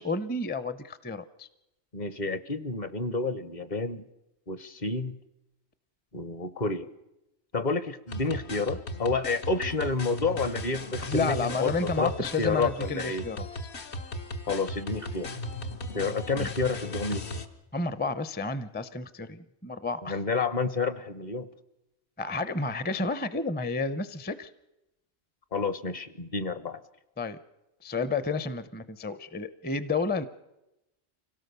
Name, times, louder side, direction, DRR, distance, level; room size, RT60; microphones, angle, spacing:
voice 1, 0.0-1.5 11.1-13.5 16.4-16.5 17.7-20.2 22.2-24.5 27.2-27.4 27.8-30.3, left 3 dB, 10° left, 15 dB, 0.5 m, -31 dB
voice 2, 1.9-4.0 4.5-5.2 6.1-6.9 7.5-13.2 14.5-15.3 15.9-17.2 20.0-21.5 25.5-26.8, left 3 dB, 45° left, 14 dB, 0.9 m, -30 dB
sound 1, 8.1-17.5, left 1 dB, 75° left, 1.5 m, -37 dB
25.0 x 17.5 x 6.8 m, 0.93 s
omnidirectional pair, 1.1 m